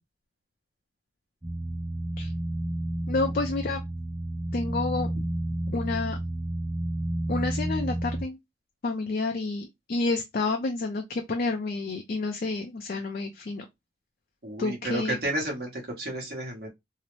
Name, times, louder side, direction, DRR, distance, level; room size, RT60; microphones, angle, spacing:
sound 1, 1.4-8.2, right 1 dB, 15° right, 0.5 m, -31 dB
voice 1, 3.1-3.8 4.5-5.1 5.7-6.2 7.3-8.4 8.8-13.7 14.6-15.2, left 3 dB, 50° left, 0.4 m, -29 dB
voice 2, 14.4-16.7, right 1 dB, 55° right, 1.0 m, -32 dB
2.7 x 2.0 x 3.0 m
head